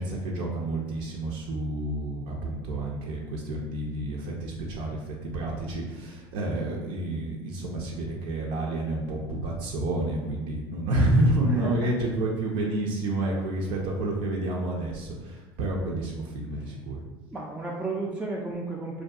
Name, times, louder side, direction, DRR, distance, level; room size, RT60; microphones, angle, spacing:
voice 1, 0.0-17.0, right 1 dB, 65° right, -2 dB, 0.5 m, -29 dB
voice 2, 11.4-12.0 16.5-16.8 17.3-19.0, right 2 dB, 10° right, -4 dB, 0.3 m, -33 dB
2.6 x 2.2 x 2.3 m, 1.2 s
hypercardioid pair, 85°, 12 cm